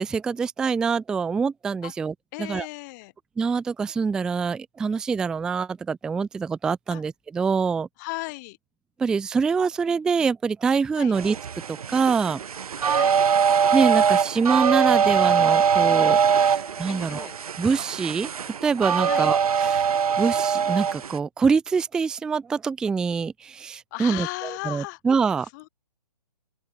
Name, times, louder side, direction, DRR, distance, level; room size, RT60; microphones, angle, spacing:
voice 1, 0.0-2.7 3.4-7.9 9.0-11.4 11.7-12.4 13.7-17.3 17.6-19.9 20.2-25.5, right 5 dB, 5° right, 0.5 m, -25 dB
voice 2, 2.3-3.1 6.9-7.0 8.0-8.6 11.0-11.2 12.8-13.2 16.9-17.4 19.0-19.3 23.9-25.0 25.5-25.7, left 24 dB, 25° left, 1.8 m, -35 dB
sound 1, 11.1-21.2, right 7 dB, 60° right, 2.5 m, -22 dB
open air
hypercardioid pair, 145°, 21 cm